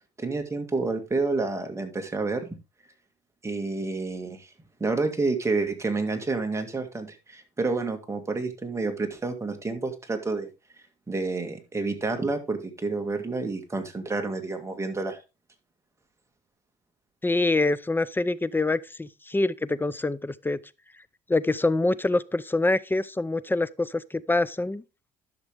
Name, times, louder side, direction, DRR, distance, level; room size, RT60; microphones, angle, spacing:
voice 1, 0.2-2.5 3.4-4.5 4.8-10.5 11.1-15.2, right 3 dB, 15° right, 1.9 m, -29 dB
voice 2, 17.2-20.6 21.3-24.8, left 2 dB, 10° left, 0.5 m, -25 dB
11.5 x 6.5 x 3.4 m
cardioid pair, 110°, 17 cm